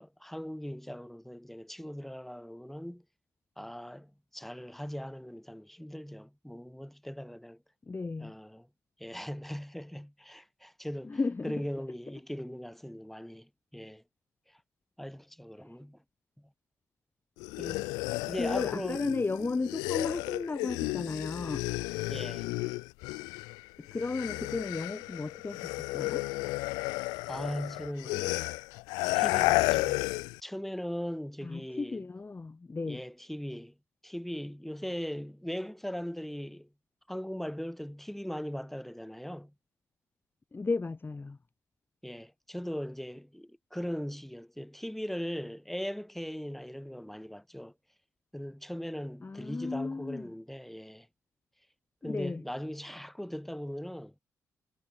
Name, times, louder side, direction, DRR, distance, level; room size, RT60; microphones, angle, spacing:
voice 1, 0.0-3.0 3.6-7.6 8.2-8.7 9.0-14.0 14.5-14.6 15.0-16.0 16.4-16.5 17.6-17.9 18.3-19.0 22.1-22.5 27.3-28.4 29.1-30.1 30.4-32.1 32.9-33.7 34.0-36.7 37.1-39.5 42.0-47.7 48.3-51.1 52.0-54.1, equal, 5° left, 4.5 m, -39 dB
voice 2, 7.9-8.3 11.0-11.6 18.4-21.6 23.8-26.2 31.4-33.0 40.5-41.4 49.2-50.3 52.0-52.4, left 3 dB, 30° left, 2.1 m, -34 dB
sound 1, 17.4-23.6 23.9-30.4, left 25 dB, 90° left, 0.5 m, -32 dB
hypercardioid pair, 45°, 7 cm